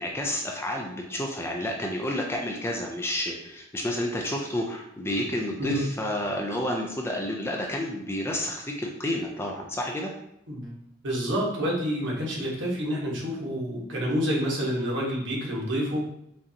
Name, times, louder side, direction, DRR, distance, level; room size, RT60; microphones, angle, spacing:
voice 1, 0.0-10.1 12.4-12.5, left 1 dB, 10° left, 0 dB, 0.4 m, -30 dB
voice 2, 11.0-16.0, equal, 65° right, -4 dB, 1.3 m, -28 dB
5.1 x 2.6 x 2.8 m, 0.80 s
head